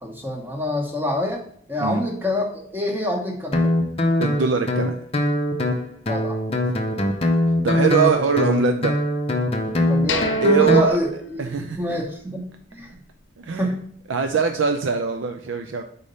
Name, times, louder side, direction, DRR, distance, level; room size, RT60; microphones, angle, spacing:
voice 1, 0.0-1.4 1.7-3.7 6.1-6.4 9.9-10.3 10.6-12.9 13.6-13.8, left 1 dB, 10° right, 1 dB, 1.1 m, -27 dB
Guitar, 3.5-10.9, left 1 dB, 30° left, 0.7 m, -22 dB
voice 2, 4.2-4.9 7.6-8.9 10.4-11.0 11.4-12.0 13.4-13.7 14.1-15.8, right 5 dB, 70° right, 5 dB, 0.5 m, -21 dB
sound 1, 10.1-12.0 12.3-12.4 12.9-13.1, left 4 dB, 65° left, 0.7 m, -31 dB
5.0 x 4.1 x 5.4 m, 0.62 s
head